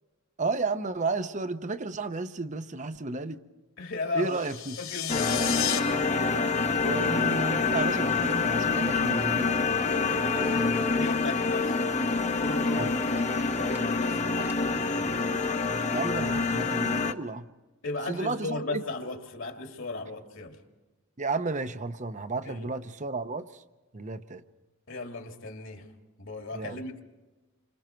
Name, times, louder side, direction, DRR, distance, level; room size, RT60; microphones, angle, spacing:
voice 1, 0.4-3.4 4.1-4.8 6.8-9.5 12.8-12.9 14.4-14.5 15.9-17.4 18.1-18.8 21.2-23.6 23.9-24.4 26.5-26.8, right 3 dB, 35° right, 11 dB, 0.8 m, -32 dB
voice 2, 3.8-4.4 4.8-6.4 9.9-11.9 12.4-15.2 17.8-20.6 22.4-22.7 24.9-25.9 26.2-27.0, left 2 dB, 60° left, 3 dB, 2.5 m, -37 dB
sound 1, 4.2-5.8, left 12 dB, 80° left, 3.5 m, -32 dB
sound 2, 5.1-17.1, left 4 dB, 35° left, 0.9 m, -26 dB
sound 3, 9.9-11.3 13.2-13.5 13.8-14.9, equal, 10° right, 1.0 m, -38 dB
29.5 x 25.5 x 4.5 m, 1.2 s
head